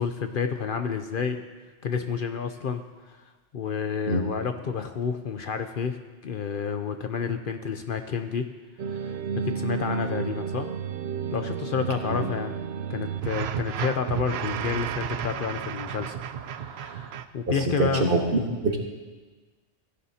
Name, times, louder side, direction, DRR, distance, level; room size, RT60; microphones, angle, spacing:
voice 1, 0.0-1.4 1.8-2.8 3.5-6.0 6.2-8.4 8.9-10.7 11.3-12.5 12.9-16.2 16.5-18.0, left 6 dB, 55° left, 7 dB, 0.7 m, -30 dB
sound 1, 8.8-17.3, right 7 dB, 70° right, 0.8 m, -32 dB
voice 2, 17.5-18.8, right 2 dB, 55° right, 2 dB, 1.4 m, -25 dB
16.0 x 11.0 x 2.8 m, 1.3 s
omnidirectional pair, 1.2 m